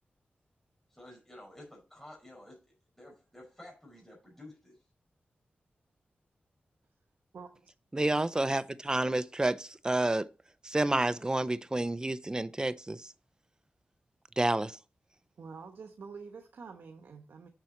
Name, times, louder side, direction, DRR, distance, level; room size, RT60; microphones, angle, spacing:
voice 1, 0.9-2.6 3.0-4.8, left 1 dB, 10° left, 4.9 m, -51 dB
voice 2, 7.3-7.7 15.4-17.5, right 5 dB, 90° right, 1.1 m, -47 dB
voice 3, 7.9-10.3 10.6-13.1 14.4-14.8, right 2 dB, 20° right, 0.6 m, -29 dB
7.5 x 6.9 x 4.2 m
wide cardioid pair, 80°, 4 cm